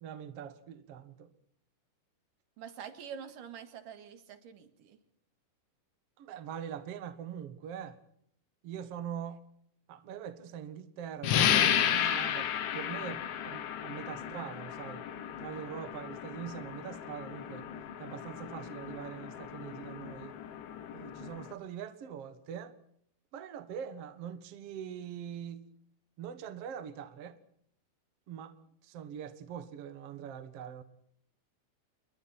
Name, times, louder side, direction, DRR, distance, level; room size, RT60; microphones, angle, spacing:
voice 1, 0.0-1.3 6.2-8.0 8.6-9.4 9.9-15.0 15.4-17.6 18.0-20.3 20.9-22.7 23.3-25.7 26.2-27.4 28.3-28.5 28.8-30.8, right 8 dB, 75° right, 1.3 m, -43 dB
voice 2, 2.6-5.0, right 8 dB, 55° right, 3.0 m, -46 dB
sound 1, 11.2-21.5, left 10 dB, 85° left, 4.1 m, -33 dB
29.5 x 22.5 x 4.3 m
omnidirectional pair, 5.2 m